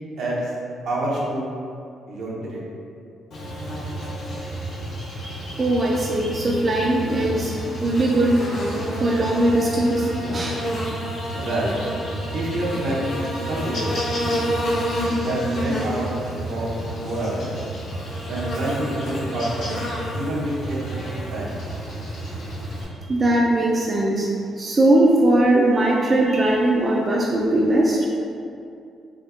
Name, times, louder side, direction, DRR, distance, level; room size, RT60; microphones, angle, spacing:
voice 1, 0.2-0.5 0.8-1.5 2.1-2.6 11.3-11.7 12.3-13.1 13.5-13.9 15.1-16.1 16.5-17.5 18.2-19.7 20.1-21.0 21.3-21.6, right 1 dB, 75° right, -6 dB, 0.8 m, -27 dB
Buzz, 3.3-22.8, equal, 75° left, 1.2 m, -29 dB
voice 2, 5.6-8.4 9.0-10.6 23.1-24.3 24.6-28.1, right 1 dB, 35° right, -3 dB, 0.3 m, -20 dB
3.5 x 2.6 x 2.5 m, 2.5 s
cardioid pair, 90°, 0 cm